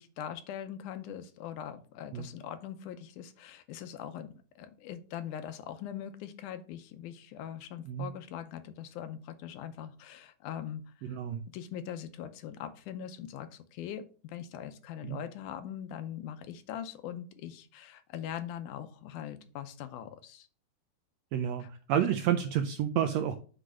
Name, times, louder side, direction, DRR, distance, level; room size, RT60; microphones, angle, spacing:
voice 1, 0.0-11.2 11.5-20.5 21.6-21.7, left 10 dB, 80° left, 10 dB, 2.2 m, -42 dB
voice 2, 11.0-11.4 15.0-15.2 21.3-23.4, right 9 dB, 85° right, 7 dB, 1.5 m, -30 dB
7.7 x 3.3 x 6.2 m, 0.38 s
omnidirectional pair, 3.6 m